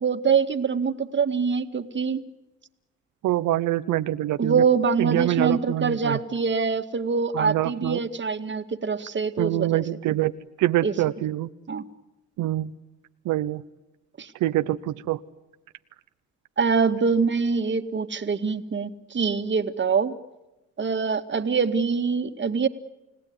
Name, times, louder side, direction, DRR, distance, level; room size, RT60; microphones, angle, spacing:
voice 1, 0.0-2.2 4.4-9.8 10.8-10.9 11.7-11.8 14.2-14.3 16.6-20.1 20.8-22.7, right 5 dB, 40° right, 8 dB, 2.1 m, -24 dB
voice 2, 3.2-4.6 5.0-6.2 7.3-8.0 9.4-10.3 10.6-11.5 12.4-12.7 13.2-13.6 14.4-15.2, right 14 dB, 85° right, 11 dB, 0.9 m, -25 dB
29.5 x 18.0 x 9.7 m, 1.0 s
cardioid pair, 90°, 30 cm